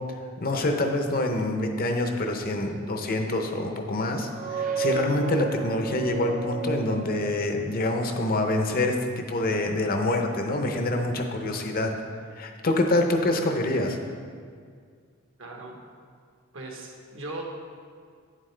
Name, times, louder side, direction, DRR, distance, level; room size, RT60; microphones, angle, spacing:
voice 1, 0.4-11.9 12.4-14.0, left 2 dB, 45° left, 4 dB, 0.7 m, -26 dB
sound 1, 4.2-7.7, right 5 dB, 35° right, 0.6 m, -32 dB
voice 2, 15.4-15.8 16.5-17.4, right 2 dB, 65° right, 1 dB, 1.1 m, -38 dB
8.7 x 7.5 x 3.3 m, 2.1 s
head